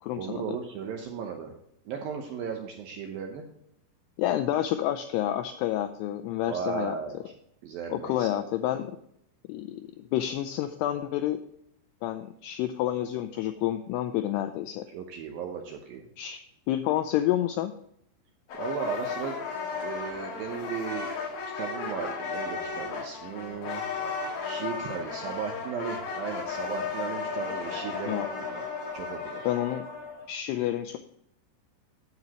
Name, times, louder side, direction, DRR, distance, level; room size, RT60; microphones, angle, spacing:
voice 1, 0.2-1.5 1.9-3.4 6.5-7.2 7.6-8.3 14.9-16.1 18.5-19.4 19.8-21.1 21.5-23.8 24.4-28.6 28.9-29.4, right 6 dB, 75° right, 2 dB, 2.2 m, -36 dB
voice 2, 4.2-7.0 7.9-9.0 9.5-11.4 12.0-14.9 16.2-16.4 16.7-17.7 28.1-28.3 29.5-29.9 30.3-31.0, left 12 dB, 85° left, 8 dB, 2.3 m, -29 dB
sound 1, 18.5-30.3, left 5 dB, 60° left, 2.9 m, -35 dB
9.6 x 8.1 x 3.0 m, 0.74 s
omnidirectional pair, 5.3 m